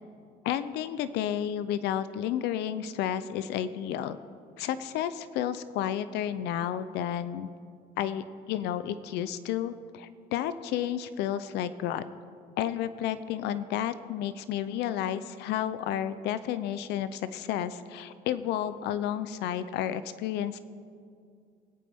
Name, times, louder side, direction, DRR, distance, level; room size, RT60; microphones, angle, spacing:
voice 1, 0.4-4.2 4.6-7.5 8.0-12.0 12.6-20.6, left 10 dB, 85° left, 13 dB, 0.6 m, -31 dB
23.5 x 8.5 x 3.6 m, 2.3 s
cardioid pair, 110°, 17 cm